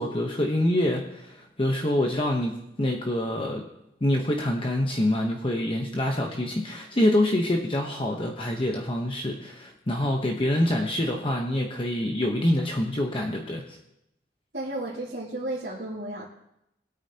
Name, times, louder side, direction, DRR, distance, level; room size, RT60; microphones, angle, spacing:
voice 1, 0.0-3.7 4.0-13.8, left 1 dB, 30° left, 1 dB, 1.0 m, -26 dB
voice 2, 14.5-16.3, right 1 dB, 70° right, -8 dB, 2.6 m, -33 dB
20.5 x 9.0 x 2.9 m, 0.82 s
head